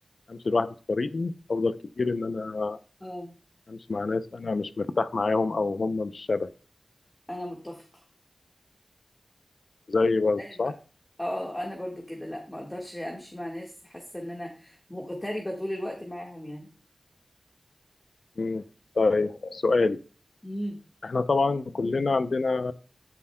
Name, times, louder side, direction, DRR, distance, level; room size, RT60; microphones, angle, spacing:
voice 1, 0.3-2.8 3.7-6.5 9.9-10.7 18.4-18.6 19.0-20.0 21.0-22.7, left 3 dB, 65° left, 12 dB, 0.5 m, -26 dB
voice 2, 3.0-3.3 7.3-8.0 10.4-10.7 11.2-16.7 20.4-20.8, equal, 15° left, 0 dB, 1.5 m, -36 dB
13.0 x 7.3 x 2.2 m, 0.37 s
wide cardioid pair, 90°, 0 cm